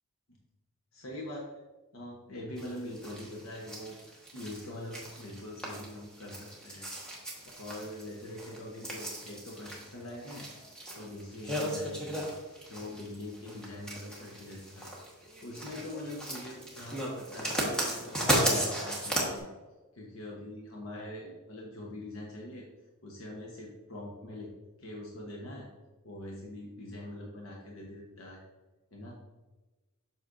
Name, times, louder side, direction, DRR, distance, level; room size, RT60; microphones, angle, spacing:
voice 1, 0.9-1.6 1.9-6.9 7.6-10.5 10.9-12.2 12.6-14.9 15.4-19.5 19.9-22.6 23.0-24.5 24.8-25.7 26.0-28.5 28.9-29.2, left 1 dB, 70° left, -2 dB, 1.1 m, -43 dB
sound 1, 2.6-19.4, right 1 dB, 5° left, 1.4 m, -35 dB
8.1 x 6.2 x 2.6 m, 1.2 s
head